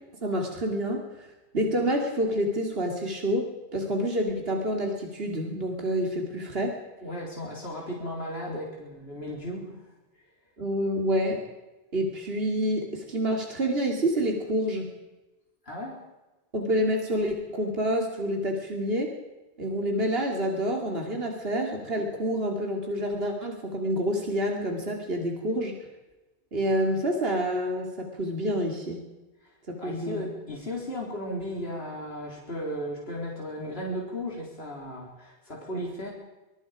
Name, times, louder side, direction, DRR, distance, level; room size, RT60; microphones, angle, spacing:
voice 1, 0.2-1.3 1.5-6.8 10.6-11.4 11.9-14.9 16.5-19.1 19.6-25.7 26.5-29.0 29.7-30.2, equal, 70° right, 1 dB, 3.2 m, -28 dB
voice 2, 7.0-9.9 10.1-10.2 15.6-16.0 29.4-29.5 29.8-36.1, equal, 70° left, -2 dB, 4.3 m, -35 dB
25.0 x 22.0 x 5.1 m, 1.1 s
omnidirectional pair, 1.1 m